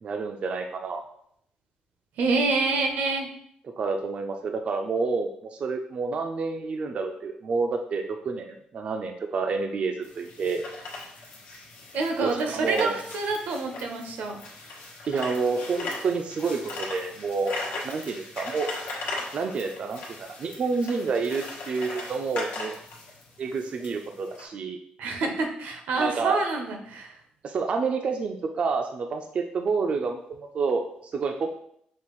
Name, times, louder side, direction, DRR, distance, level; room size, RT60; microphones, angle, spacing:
voice 1, 0.0-1.0 3.8-10.6 12.2-13.0 15.1-17.5 17.8-18.7 19.3-22.8 23.4-24.8 26.0-26.4 27.4-30.2 30.5-31.5, right 4 dB, 45° right, 4 dB, 0.3 m, -29 dB
voice 2, 2.2-3.3 11.9-14.4 25.0-27.1, right 3 dB, 90° right, 3 dB, 0.7 m, -27 dB
sound 1, 10.0-24.5, left 2 dB, 90° left, 1.1 m, -38 dB
5.4 x 2.5 x 3.0 m, 0.68 s
cardioid pair, 145°, 3 cm